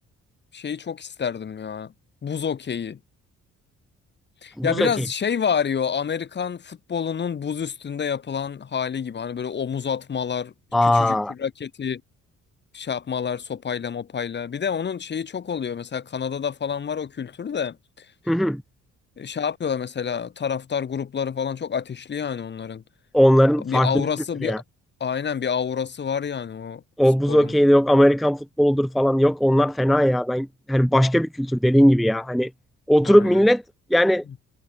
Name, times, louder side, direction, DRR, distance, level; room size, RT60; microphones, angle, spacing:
voice 1, 0.5-1.9 2.2-3.0 4.4-10.5 10.8-12.0 12.7-18.1 19.2-22.8 23.6-24.6 25.0-26.8 27.3-27.5 33.0-33.4, left 7 dB, 35° left, 1.0 m, -28 dB
voice 2, 4.6-4.9 10.7-11.3 18.3-18.6 23.1-24.1 24.4-24.6 27.0-32.5 32.9-33.6 33.9-34.2, equal, ahead, 0.6 m, -18 dB
cardioid pair, 90°, 30 cm